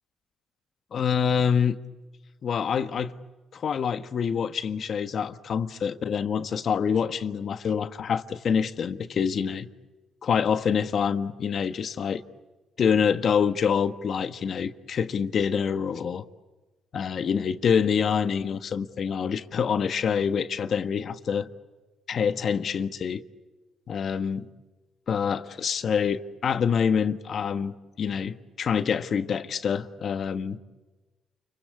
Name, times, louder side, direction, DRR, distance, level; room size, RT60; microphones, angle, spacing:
voice 1, 0.9-1.7 2.4-3.2 3.5-9.7 10.2-12.2 12.8-16.2 16.9-21.5 22.1-23.2 23.9-24.5 25.1-30.6, left 7 dB, 55° left, 1.5 m, -26 dB
29.5 x 23.0 x 8.5 m
cardioid pair, 90°, 0 cm